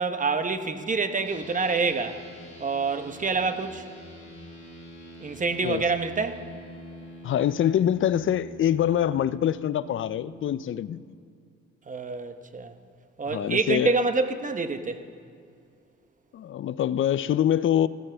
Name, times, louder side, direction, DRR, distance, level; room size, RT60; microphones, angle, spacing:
voice 1, 0.0-2.2 2.6-3.8 5.2-6.4 11.9-12.7 13.2-15.0, right 4 dB, 25° right, 1.0 m, -27 dB
sound 1, 1.2-10.6, equal, 20° left, 2.5 m, -45 dB
voice 2, 7.2-11.0 13.3-13.9 16.3-17.9, left 10 dB, 45° left, 0.4 m, -24 dB
15.5 x 15.0 x 3.4 m
cardioid pair, 90°, 30 cm